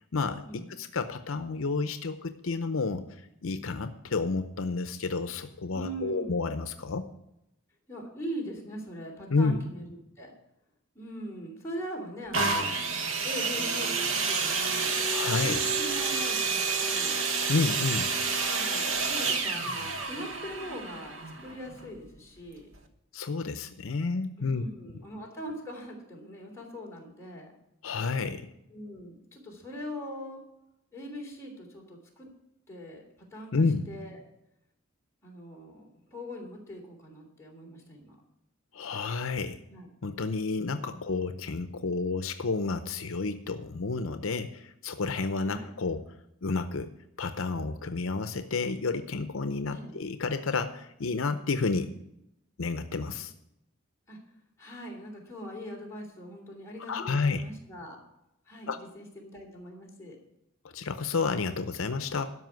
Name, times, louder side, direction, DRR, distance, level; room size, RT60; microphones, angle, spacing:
voice 1, 0.1-0.4 0.7-3.0 3.4-7.0 9.3-9.6 15.1-15.6 17.5-18.1 23.1-24.6 27.8-28.5 33.5-33.8 38.7-39.6 40.0-46.0 46.4-46.9 47.2-51.9 52.6-53.3 56.9-57.4 58.7-58.8 60.7-62.3, left 4 dB, 75° left, 9 dB, 0.7 m, -30 dB
voice 2, 5.7-6.4 7.9-10.3 10.9-12.7 13.2-14.9 15.4-17.2 18.4-22.7 24.4-27.6 28.7-30.4 30.9-32.3 32.7-33.0 33.3-34.2 35.2-38.2 39.7-39.9 40.9-41.0 45.4-45.7 49.7-49.9 54.1-54.2 54.6-58.0 58.5-60.2, equal, 15° left, -3 dB, 3.3 m, -41 dB
sound 1, 12.3-22.0 22.7-22.8, right 4 dB, 70° right, 1.3 m, -29 dB
12.5 x 5.5 x 9.3 m, 0.84 s
head